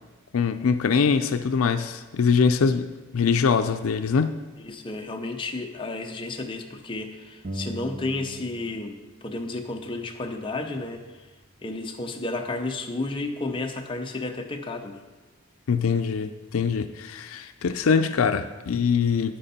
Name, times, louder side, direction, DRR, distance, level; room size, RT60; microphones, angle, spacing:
voice 1, 0.3-2.9 3.1-4.4 15.7-19.4, left 5 dB, 80° left, 9 dB, 0.5 m, -23 dB
voice 2, 4.6-11.0 11.6-15.0, left 2 dB, 25° left, 3 dB, 0.7 m, -32 dB
sound 1, 7.4-9.0 9.2-11.0, right 1 dB, 35° right, 0.9 m, -40 dB
10.0 x 8.9 x 4.2 m, 1.2 s
head